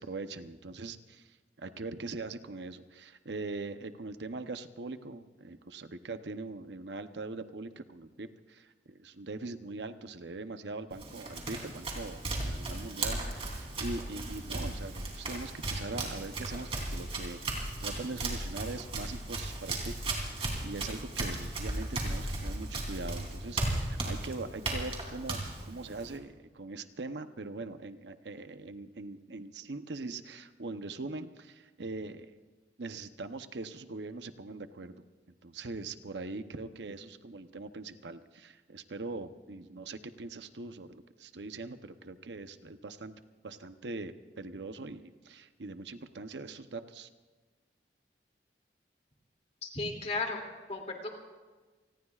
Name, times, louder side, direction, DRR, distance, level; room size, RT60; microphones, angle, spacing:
voice 1, 0.0-32.3 32.8-35.0 35.4-43.1 43.4-47.1, right 3 dB, 85° right, 10 dB, 0.8 m, -42 dB
Run, 10.9-26.2, right 2 dB, 35° right, 3.2 m, -36 dB
voice 2, 49.7-50.4 50.7-51.2, left 3 dB, 35° left, 1 dB, 2.6 m, -34 dB
29.0 x 19.5 x 2.4 m, 1.3 s
head